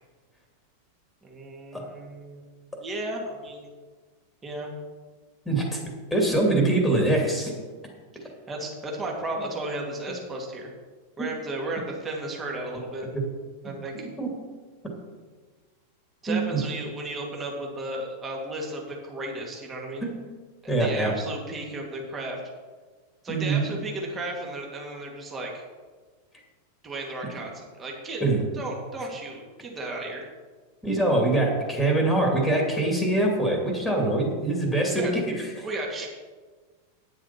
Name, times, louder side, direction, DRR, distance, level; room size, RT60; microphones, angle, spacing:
voice 1, 1.2-2.4 2.8-3.7 4.4-4.7 8.2-10.7 11.2-13.1 13.6-14.1 16.2-20.1 20.6-22.4 23.2-25.6 26.8-28.2 28.5-30.3 34.9-35.1 35.6-36.1, right 2 dB, 20° right, -1 dB, 2.4 m, -34 dB
voice 2, 5.5-5.8 6.1-7.5 14.0-14.3 16.3-16.6 20.0-20.1 20.7-21.1 23.3-23.7 28.2-28.4 30.8-35.7, right 2 dB, 5° left, 0 dB, 2.6 m, -24 dB
9.8 x 7.5 x 5.8 m, 1.4 s
figure-of-eight pair, 90°, 0 cm